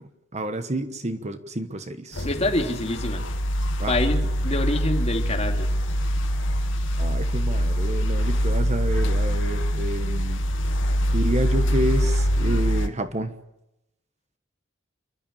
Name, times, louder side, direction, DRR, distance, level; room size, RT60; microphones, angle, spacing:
voice 1, 0.3-2.3 3.8-4.0 7.0-10.4 11.1-13.3, right 1 dB, 35° right, 9 dB, 1.2 m, -29 dB
sound 1, 2.1-12.9, equal, 85° left, 2.0 m, -24 dB
voice 2, 2.2-3.2 3.9-5.7, left 2 dB, 35° left, 3 dB, 2.8 m, -26 dB
28.0 x 12.0 x 8.8 m, 0.87 s
head